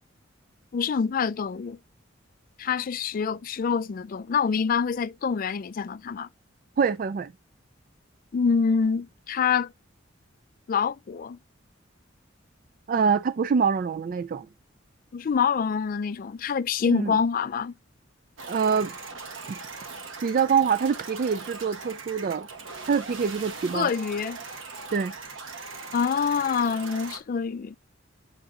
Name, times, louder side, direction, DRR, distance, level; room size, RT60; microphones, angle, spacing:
voice 1, 0.7-1.8 2.6-6.3 8.3-9.7 10.7-11.4 15.1-17.7 23.7-24.4 25.9-27.7, left 6 dB, 45° left, 0.3 m, -26 dB
voice 2, 6.8-7.3 12.9-14.5 16.9-17.2 18.5-19.0 19.5-19.6 20.2-22.5 22.9-23.9 24.9-25.1, right 6 dB, 45° right, 0.3 m, -25 dB
sound 1, 18.4-27.2, right 4 dB, 75° right, 1.4 m, -40 dB
7.9 x 3.9 x 3.7 m
head